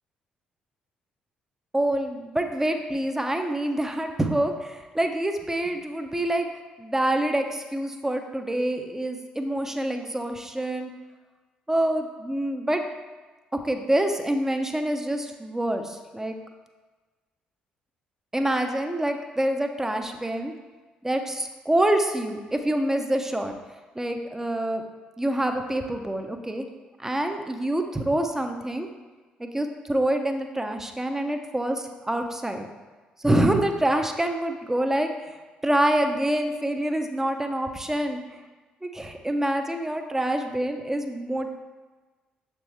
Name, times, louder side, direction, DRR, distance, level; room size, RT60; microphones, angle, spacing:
voice 1, 1.7-6.5 6.8-10.9 11.7-12.8 13.5-16.3 18.3-20.5 21.0-23.6 23.9-24.8 25.2-26.6 27.0-28.9 29.4-32.7 33.2-35.4 35.6-38.2 38.8-41.5, right 1 dB, 10° right, 5 dB, 0.7 m, -26 dB
7.0 x 4.5 x 3.3 m, 1.3 s
hypercardioid pair, 45°, 4 cm